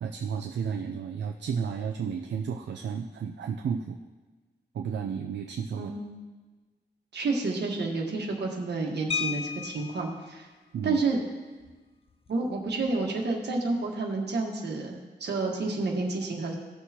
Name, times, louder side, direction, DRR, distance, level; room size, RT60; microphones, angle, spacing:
voice 1, 0.0-4.0 4.7-5.9 10.7-11.0, right 7 dB, 90° right, 3 dB, 0.5 m, -32 dB
voice 2, 5.8-6.2 7.1-10.5 10.8-11.2 12.3-16.5, right 3 dB, 70° right, 0 dB, 1.5 m, -30 dB
sound 1, 9.1-10.2 11.6-11.8 12.1-12.3 12.7-13.0, left 6 dB, 35° left, 0.4 m, -33 dB
16.0 x 6.3 x 2.9 m, 1.3 s
wide cardioid pair, 135°, 18 cm